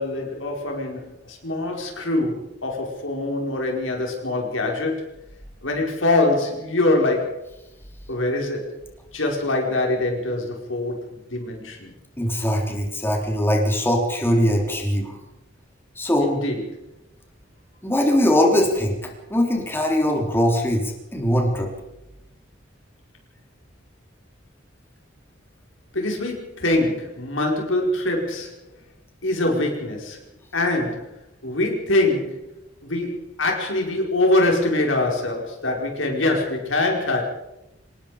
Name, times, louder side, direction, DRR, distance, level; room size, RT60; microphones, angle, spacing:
voice 1, 0.0-5.1 5.6-7.4 8.1-8.8 9.1-11.9 16.2-16.9 25.9-28.6 29.2-30.2 30.5-32.5 32.8-37.2, left 2 dB, 80° left, 1 dB, 5.2 m, -24 dB
voice 2, 12.2-15.2 16.0-16.3 17.8-19.0 19.3-21.7, equal, 10° left, 0 dB, 3.8 m, -21 dB
26.0 x 19.5 x 5.2 m, 0.93 s
head